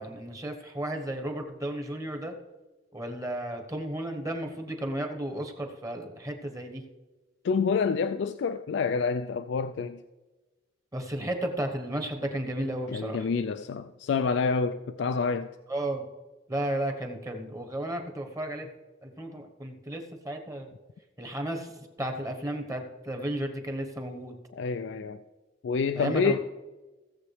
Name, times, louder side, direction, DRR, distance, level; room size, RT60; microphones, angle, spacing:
voice 1, 0.0-2.3 2.9-6.8 10.9-13.3 15.7-16.1 16.5-18.7 19.0-20.7 21.2-24.3 25.9-26.4, right 1 dB, 20° right, 1.1 m, -33 dB
voice 2, 7.4-10.0 12.9-15.6 24.5-25.2 25.6-26.4, left 5 dB, 70° left, 0.3 m, -28 dB
17.0 x 7.2 x 3.3 m
head